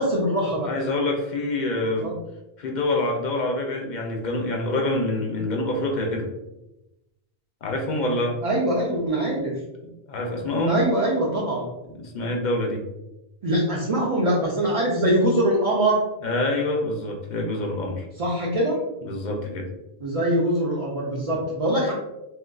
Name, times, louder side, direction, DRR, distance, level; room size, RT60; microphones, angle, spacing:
voice 1, 0.0-0.7 2.0-2.1 8.4-9.5 10.7-11.7 13.4-16.0 18.2-18.8 20.0-21.9, right 1 dB, 45° right, -5 dB, 0.5 m, -23 dB
voice 2, 0.6-2.1 2.6-6.3 7.6-8.4 9.8-10.8 11.8-12.8 16.2-18.1 19.0-19.7 21.3-21.4, left 2 dB, 50° left, 1 dB, 0.7 m, -26 dB
3.7 x 2.5 x 2.2 m, 0.94 s
omnidirectional pair, 1.1 m